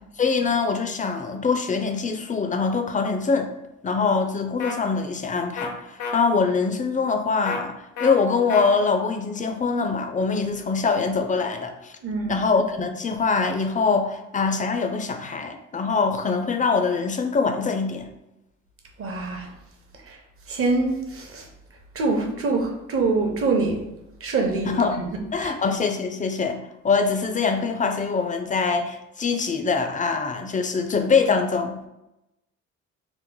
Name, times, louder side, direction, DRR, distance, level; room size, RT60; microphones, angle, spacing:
voice 1, 0.2-3.5 3.8-11.9 12.3-18.1 24.7-25.0 25.3-31.9, left 4 dB, 25° left, 5 dB, 0.4 m, -23 dB
sound 1, 4.6-4.8 5.6-5.7 6.0-6.1 7.5-7.6 8.0-8.1 8.5-8.7, left 4 dB, 70° left, 0.6 m, -29 dB
voice 2, 12.0-12.4 19.0-19.5 20.1-20.2 20.5-21.5 21.9-23.8 24.2-25.1 25.4-25.5, right 3 dB, 45° right, 2 dB, 0.7 m, -25 dB
3.0 x 2.1 x 3.7 m, 0.90 s
cardioid pair, 90°, 30 cm